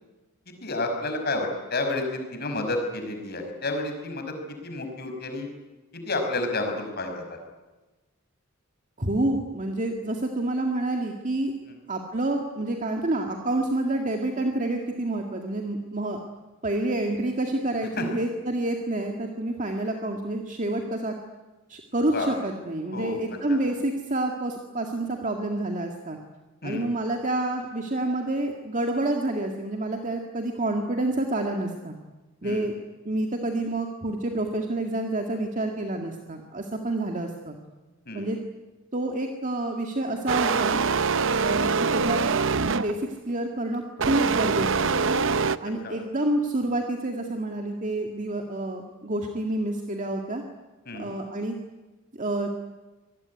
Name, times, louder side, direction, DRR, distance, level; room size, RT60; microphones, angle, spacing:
voice 1, 0.6-4.2 4.6-5.5 6.1-7.2 18.0-18.1 22.1-22.3 22.9-23.2 23.5-23.6 26.6-26.9 32.4-32.7 38.1-38.3 45.8-45.9 50.9-51.1, left 2 dB, 50° left, 5 dB, 5.7 m, -30 dB
voice 2, 9.0-11.5 11.9-16.2 16.6-21.1 21.7-26.2 26.6-32.0 32.4-32.7 33.1-37.6 38.1-38.4 38.9-40.8 41.4-42.2 42.7-45.1 45.6-50.4 50.9-51.6 52.2-52.6, right 1 dB, 40° right, 3 dB, 2.1 m, -28 dB
sound 1, 40.3-43.1 44.0-45.6, right 5 dB, 65° right, 0.8 m, -24 dB
26.0 x 19.5 x 9.8 m, 1.2 s
head